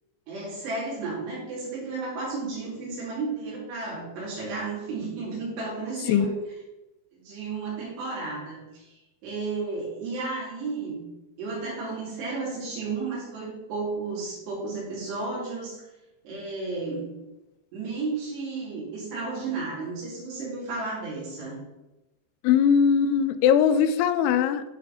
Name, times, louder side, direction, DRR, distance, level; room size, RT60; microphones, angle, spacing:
voice 1, 0.3-6.3 7.1-8.9 9.2-11.1 11.4-15.8 16.3-17.1 17.7-21.6, right 3 dB, 90° right, -6 dB, 5.3 m, -33 dB
voice 2, 22.4-24.6, left 7 dB, 85° left, 11 dB, 2.6 m, -20 dB
10.5 x 5.3 x 4.2 m, 1.0 s
omnidirectional pair, 4.7 m